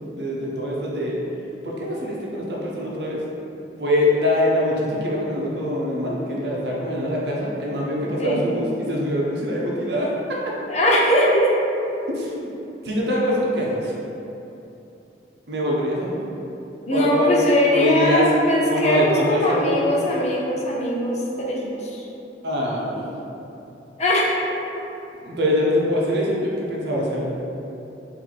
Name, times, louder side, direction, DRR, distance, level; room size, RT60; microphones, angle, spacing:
voice 1, 0.1-1.2 1.6-3.2 3.8-10.4 12.1-12.3 12.8-13.9 15.5-16.2 16.9-17.3 17.7-18.3 18.6-20.1 22.4-23.0 25.2-27.3, left 1 dB, 65° right, -4 dB, 0.8 m, -24 dB
voice 2, 10.7-11.5 16.9-22.0 24.0-24.4, left 1 dB, 40° left, -3 dB, 0.6 m, -20 dB
4.4 x 2.7 x 4.1 m, 2.9 s
head